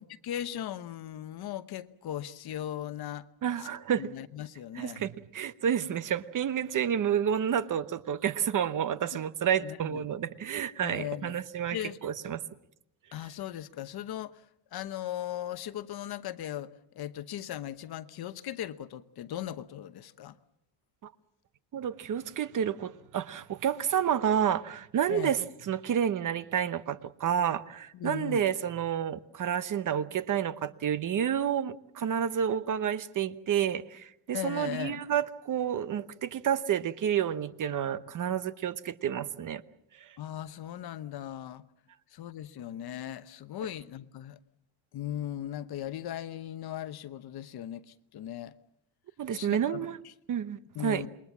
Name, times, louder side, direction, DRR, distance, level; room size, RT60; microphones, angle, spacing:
voice 1, 0.0-3.3 3.6-3.7 4.0-5.0 9.6-10.0 10.8-11.4 11.7-12.0 13.1-20.4 25.1-25.3 27.9-28.4 34.3-35.0 40.2-41.6 42.1-44.4 44.9-48.6 49.3-50.1 50.7-51.1, left 11 dB, 50° left, 1.1 m, -38 dB
voice 2, 3.4-4.1 4.8-11.8 12.0-12.4 21.0-21.1 21.7-25.4 25.7-39.6 40.0-40.1 49.2-50.0 50.3-51.0, right 9 dB, 40° right, 1.0 m, -30 dB
28.0 x 22.0 x 7.3 m
cardioid pair, 165°, 48 cm